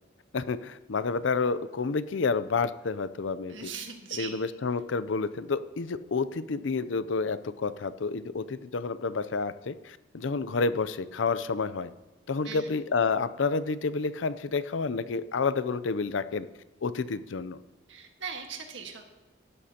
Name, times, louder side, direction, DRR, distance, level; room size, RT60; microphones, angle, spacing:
voice 1, 0.3-3.7 4.1-11.9 12.3-16.5 16.8-17.6, left 4 dB, 85° left, 15 dB, 0.6 m, -29 dB
voice 2, 3.5-4.3 12.4-12.7 17.9-19.0, right 6 dB, 80° right, 3 dB, 1.7 m, -39 dB
16.5 x 12.5 x 2.9 m, 1.1 s
head